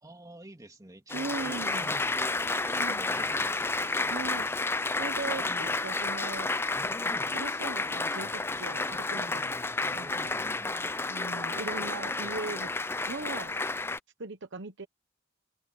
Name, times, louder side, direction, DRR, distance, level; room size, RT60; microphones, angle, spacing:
voice 1, 0.0-4.2 10.0-11.0, right 1 dB, 15° right, 2.7 m, -47 dB
Applause, 1.1-14.0, left 3 dB, 10° left, 0.4 m, -31 dB
voice 2, 1.1-1.9 2.7-3.0 4.1-4.5 5.0-6.5 7.3-9.5 9.9-10.3 11.1-12.7 13.1-13.5 14.2-14.9, right 3 dB, 60° right, 1.0 m, -39 dB
head